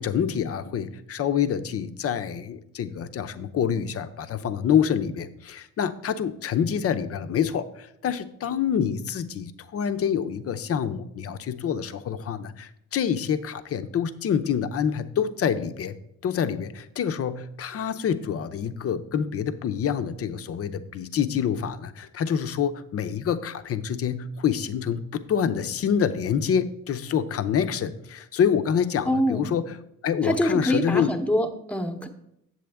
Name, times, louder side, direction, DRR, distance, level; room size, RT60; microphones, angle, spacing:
voice 1, 0.0-29.8 30.0-31.1, left 8 dB, 50° left, 11 dB, 0.6 m, -26 dB
voice 2, 29.0-29.5 30.2-32.1, equal, 5° left, 5 dB, 0.9 m, -25 dB
7.7 x 7.6 x 3.5 m, 0.77 s
cardioid pair, 90°, 30 cm